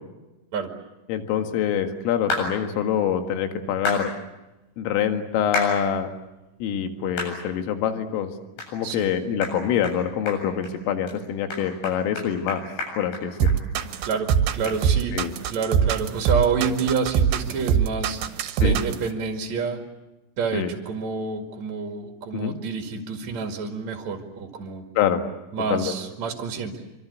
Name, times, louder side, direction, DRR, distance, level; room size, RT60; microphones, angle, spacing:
voice 1, 1.1-4.1 4.8-6.1 6.6-8.3 8.7-12.6 13.0-13.6 15.1-15.3 18.6-18.8 20.5-20.7 22.3-22.5 25.0-25.2 25.7-25.9, left 8 dB, 80° left, 6 dB, 4.4 m, -25 dB
sound 1, 2.3-2.5 3.9-4.0 5.5-5.7 6.3-6.4 7.2-7.3 7.8-7.9 8.6-8.7 9.0-9.1 9.4-9.6 9.8-10.0 10.3-10.7 11.1-11.2 11.5-13.9 14.1-14.2 14.7-14.8, left 2 dB, 60° left, 10.0 m, -30 dB
sound 2, 13.4-19.1, right 8 dB, 70° right, 3.0 m, -22 dB
voice 2, 14.1-15.2 15.5-18.2 18.6-19.8 20.4-24.9 25.5-26.8, right 5 dB, 45° right, 3 dB, 2.5 m, -28 dB
26.0 x 25.5 x 8.2 m, 1.0 s
omnidirectional pair, 5.8 m